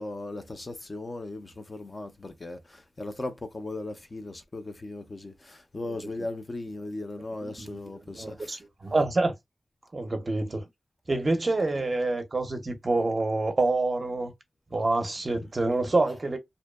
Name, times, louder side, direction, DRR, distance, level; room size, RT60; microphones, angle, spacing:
voice 1, 0.0-8.6, left 2 dB, 35° left, 0.5 m, -37 dB
voice 2, 7.6-9.3 9.9-10.6 11.1-14.3 14.7-16.4, right 2 dB, 40° right, 0.6 m, -27 dB
2.6 x 2.2 x 2.2 m
wide cardioid pair, 115°, 0 cm